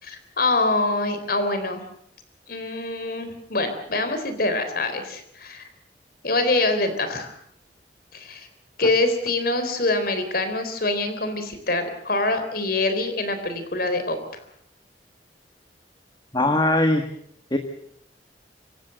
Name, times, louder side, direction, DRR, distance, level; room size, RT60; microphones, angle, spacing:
voice 1, 0.0-1.8 2.5-5.6 6.2-7.3 8.1-8.5 8.8-14.4, left 2 dB, 55° left, 9 dB, 3.8 m, -25 dB
voice 2, 16.3-17.0 17.5-17.6, left 1 dB, 25° left, 6 dB, 1.5 m, -20 dB
26.0 x 15.0 x 7.8 m, 0.69 s
head